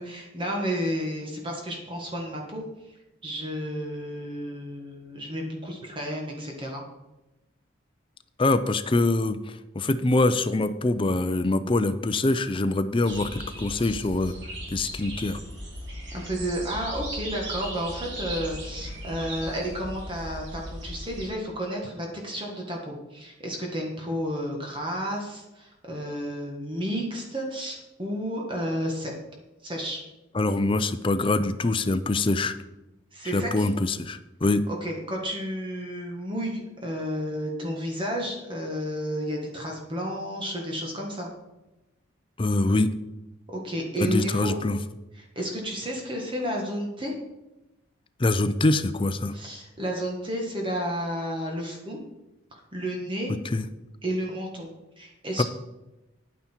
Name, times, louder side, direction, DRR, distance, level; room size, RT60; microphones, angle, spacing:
voice 1, 0.0-2.9 3.2-6.8 16.1-29.1 29.6-30.0 33.1-33.7 34.7-41.3 43.5-44.5 45.1-47.1 49.3-52.0 52.7-53.3 54.0-54.7 55.0-55.4, equal, 25° right, 0 dB, 1.6 m, -32 dB
voice 2, 8.4-9.4 9.7-14.4 14.7-15.4 30.3-32.5 33.3-34.6 42.4-42.9 44.0-44.8 48.2-49.3 53.3-53.6 55.4-55.5, left 2 dB, 25° left, 11 dB, 0.5 m, -24 dB
sound 1, 13.1-21.3, equal, 60° right, 2.7 m, -37 dB
10.0 x 9.4 x 4.5 m, 0.99 s
head